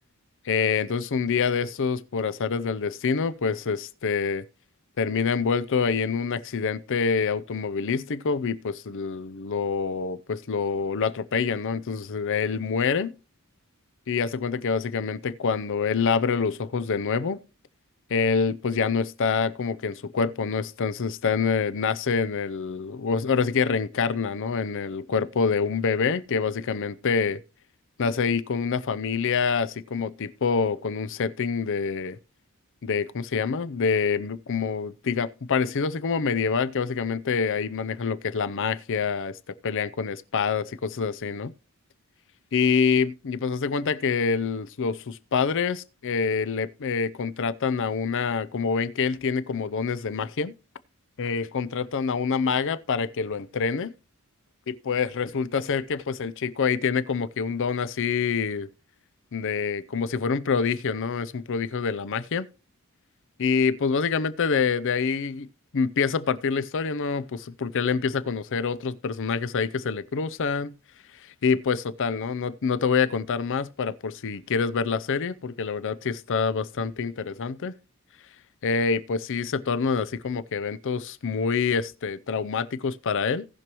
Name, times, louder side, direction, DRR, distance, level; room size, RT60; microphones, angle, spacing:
voice 1, 0.4-4.4 5.0-13.1 14.1-17.4 18.1-27.4 28.0-32.2 32.8-41.5 42.5-50.5 51.2-53.9 54.7-58.7 59.3-62.5 63.4-70.8 71.1-77.8 78.6-83.5, left 5 dB, 60° left, 0.6 m, -26 dB
18.0 x 6.1 x 3.0 m
head